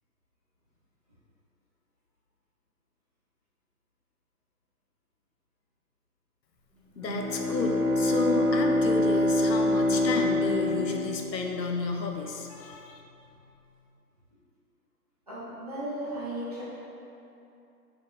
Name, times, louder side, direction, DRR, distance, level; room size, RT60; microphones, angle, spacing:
voice 1, 7.0-13.0, left 3 dB, 90° left, 2 dB, 0.6 m, -32 dB
Bowed string instrument, 7.0-11.6, left 1 dB, ahead, 0.3 m, -25 dB
voice 2, 15.3-16.6, right 1 dB, 25° right, -11 dB, 0.7 m, -35 dB
5.2 x 3.6 x 2.3 m, 2.8 s
figure-of-eight pair, 150°, 49 cm